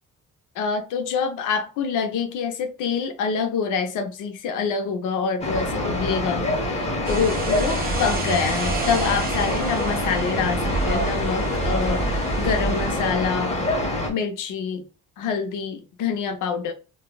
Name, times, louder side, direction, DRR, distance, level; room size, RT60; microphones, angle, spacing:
voice 1, 0.6-13.6 14.1-14.8 15.2-16.7, left 6 dB, 90° left, 0.7 m, -26 dB
sound 1, 5.4-14.1, left 1 dB, 20° left, 0.9 m, -26 dB
sound 2, 7.0-13.1, right 3 dB, 30° right, 1.0 m, -28 dB
4.0 x 2.3 x 2.2 m
cardioid pair, 90°, 30 cm